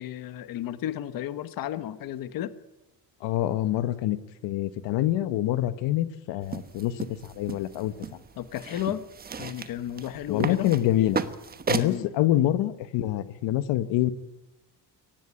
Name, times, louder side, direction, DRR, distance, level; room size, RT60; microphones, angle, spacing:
voice 1, 0.0-2.5 8.4-9.0 9.4-11.2 11.7-12.0, left 11 dB, 55° left, 12 dB, 1.3 m, -33 dB
voice 2, 3.2-7.9 10.3-11.2 11.7-14.1, left 13 dB, 80° left, 13 dB, 1.3 m, -26 dB
sound 1, 6.4-12.0, right 5 dB, 20° right, 1.2 m, -34 dB
23.0 x 18.5 x 9.9 m, 1.1 s
cardioid pair, 175°, 43 cm